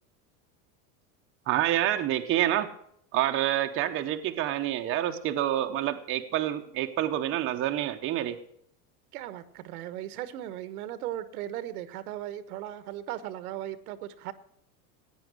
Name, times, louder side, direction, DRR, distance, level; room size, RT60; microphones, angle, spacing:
voice 1, 1.5-2.7 3.1-8.4, right 12 dB, 30° right, 0.9 m, -27 dB
voice 2, 9.1-14.3, right 12 dB, 85° right, 1.2 m, -37 dB
16.0 x 9.2 x 6.2 m
supercardioid pair, 155°, 43 cm